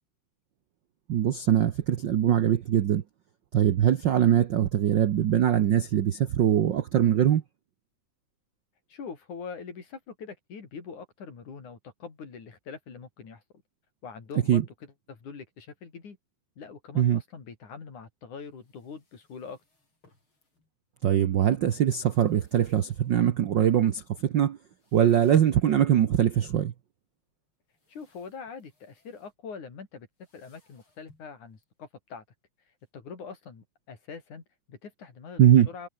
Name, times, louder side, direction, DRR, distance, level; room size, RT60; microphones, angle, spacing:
voice 1, 1.1-3.0 3.5-7.4 14.5-14.6 16.9-17.2 21.0-24.6 24.9-26.7 35.4-35.7, right 10 dB, 80° right, 1.0 m, -22 dB
voice 2, 8.9-13.4 14.0-16.2 16.6-19.6 27.9-30.1 30.3-32.2 32.9-35.9, left 5 dB, 75° left, 5.7 m, -43 dB
sound 1, 18.4-21.0 21.3-23.4 23.7-23.8 24.2-24.3 24.6-32.9, left 3 dB, 40° left, 7.6 m, -57 dB
omnidirectional pair, 3.5 m